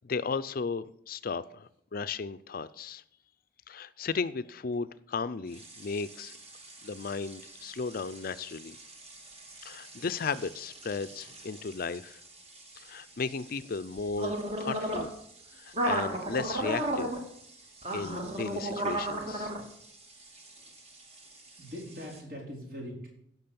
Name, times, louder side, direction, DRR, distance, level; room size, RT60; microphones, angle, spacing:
voice 1, 0.0-3.0 3.7-6.3 6.8-8.8 9.6-12.2 12.8-15.1 15.6-17.1 17.9-19.5, left 4 dB, 50° left, 15 dB, 0.5 m, -35 dB
sound 1, 5.5-22.2, right 1 dB, 35° right, 2.2 m, -37 dB
voice 2, 21.6-23.1, equal, 55° right, 0 dB, 4.4 m, -41 dB
16.0 x 6.0 x 6.9 m, 0.72 s
head